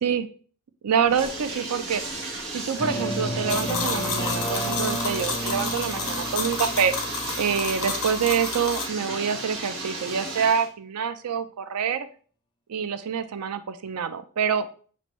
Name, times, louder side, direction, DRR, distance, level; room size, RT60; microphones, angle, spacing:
voice 1, 0.8-2.0 2.5-6.9 7.4-12.1 12.7-14.7, right 7 dB, 90° right, 11 dB, 0.5 m, -26 dB
Bathtub (filling or washing), 0.9-10.7, right 2 dB, 60° right, 1.4 m, -35 dB
sound 1, 2.8-8.7, equal, 20° left, 0.4 m, -33 dB
sound 2, 3.5-8.9, left 4 dB, 75° left, 1.0 m, -31 dB
6.6 x 2.6 x 3.1 m, 0.42 s
head